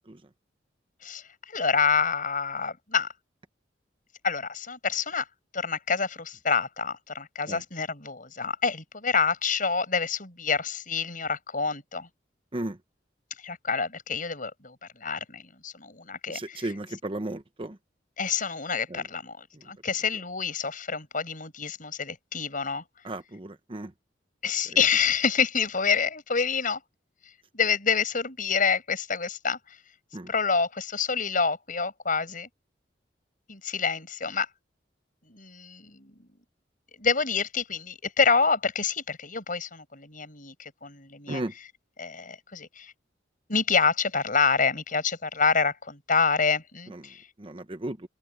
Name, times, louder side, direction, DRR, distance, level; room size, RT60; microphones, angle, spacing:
voice 1, 1.5-3.1 4.2-5.2 5.5-12.1 13.4-16.7 18.2-22.8 24.4-26.8 27.5-29.6 30.3-32.5 33.5-34.5 35.3-36.1 37.0-41.4 42.0-42.9 43.5-47.2, left 5 dB, 50° left, 7.9 m, -27 dB
voice 2, 16.3-17.8 18.9-19.0 23.0-23.9 30.1-30.3 41.3-41.5 46.9-47.0 47.4-48.1, right 1 dB, 30° right, 1.0 m, -34 dB
open air
head